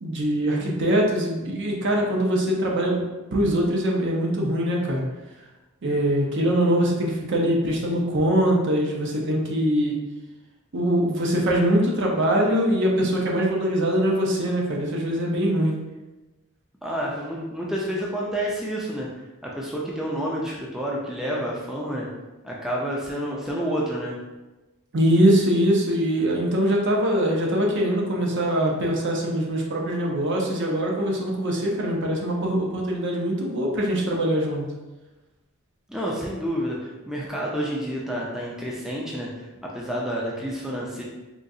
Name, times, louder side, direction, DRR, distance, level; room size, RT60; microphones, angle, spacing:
voice 1, 0.0-3.0 3.3-5.0 5.8-10.0 10.7-15.8 24.9-34.7, equal, 55° right, -1 dB, 0.6 m, -22 dB
voice 2, 16.8-19.1 19.4-22.1 22.4-24.2 35.9-41.0, equal, ahead, -4 dB, 0.4 m, -29 dB
3.7 x 2.3 x 2.6 m, 1.1 s
head